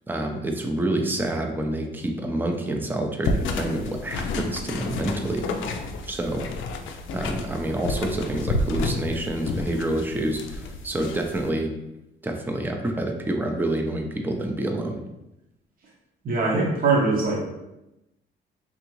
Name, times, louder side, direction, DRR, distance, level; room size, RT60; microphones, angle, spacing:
voice 1, 0.1-5.4 6.0-6.4 7.1-11.7 12.2-15.0, right 1 dB, 10° right, 3 dB, 0.5 m, -27 dB
sound 1, 3.2-11.5, left 3 dB, 80° left, 0.4 m, -30 dB
voice 2, 16.2-17.6, right 3 dB, 45° right, -3 dB, 0.9 m, -22 dB
3.5 x 2.5 x 3.0 m, 0.91 s
cardioid pair, 90°, 20 cm